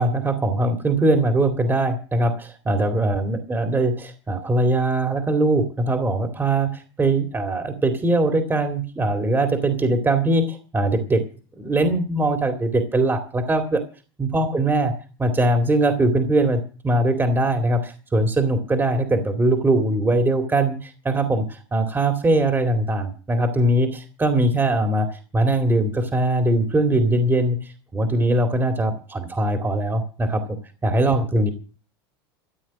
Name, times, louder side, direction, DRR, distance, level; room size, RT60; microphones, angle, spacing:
voice 1, 0.0-11.2 11.6-13.8 14.2-14.9 15.2-30.6 30.8-31.5, right 2 dB, 15° right, 6 dB, 2.3 m, -21 dB
14.5 x 7.9 x 8.4 m, 0.37 s
supercardioid pair, 105°, 13 cm